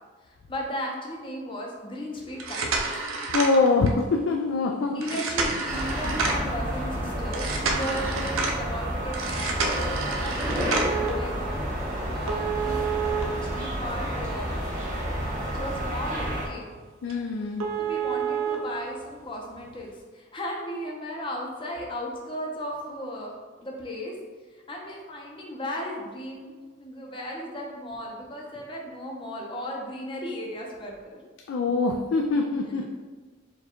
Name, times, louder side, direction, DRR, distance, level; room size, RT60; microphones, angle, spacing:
voice 1, 0.2-2.6 4.9-13.0 13.4-14.6 15.1-16.7 17.8-24.1 24.5-31.2 32.7-33.0, equal, 25° left, -1 dB, 0.6 m, -36 dB
sound 1, 2.3-4.0 5.0-6.5 7.3-8.6 9.1-11.1 12.3-14.1 14.6-14.7 15.2-15.3 15.8-15.9 16.2-16.3 16.7-16.8 17.1-17.2 17.6-18.6 19.6-19.7, right 5 dB, 85° right, 0.6 m, -29 dB
voice 2, 3.3-5.2 17.0-17.7 31.5-32.8, left 3 dB, 65° left, 2 dB, 0.3 m, -24 dB
sound 2, 5.7-16.5, equal, 35° right, 1.1 m, -30 dB
4.5 x 2.3 x 4.3 m, 1.4 s
head